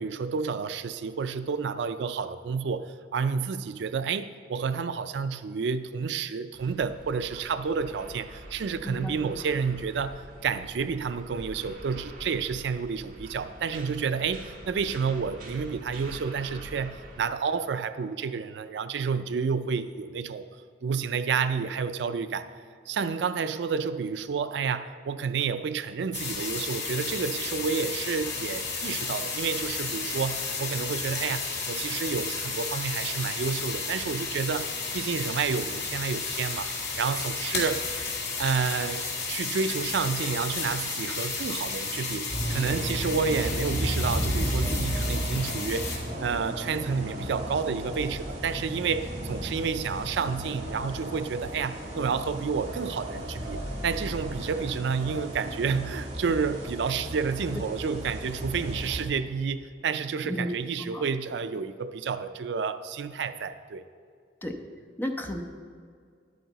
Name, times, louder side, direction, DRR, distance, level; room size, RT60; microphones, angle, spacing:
voice 1, 0.0-20.5 20.8-22.5 22.9-37.8 38.4-63.8, right 5 dB, 65° right, 12 dB, 0.4 m, -30 dB
sound 1, 6.5-17.2, right 1 dB, 50° right, 1.6 m, -45 dB
voice 2, 8.8-9.4 60.2-60.5 60.8-61.0 64.4-64.5 65.0-65.4, left 1 dB, 10° left, 4 dB, 0.7 m, -33 dB
sound 2, 26.1-46.0, left 4 dB, 65° left, 2.2 m, -33 dB
sound 3, 42.3-59.0, right 1 dB, 30° right, 2.2 m, -34 dB
11.0 x 9.0 x 4.0 m, 2.2 s
head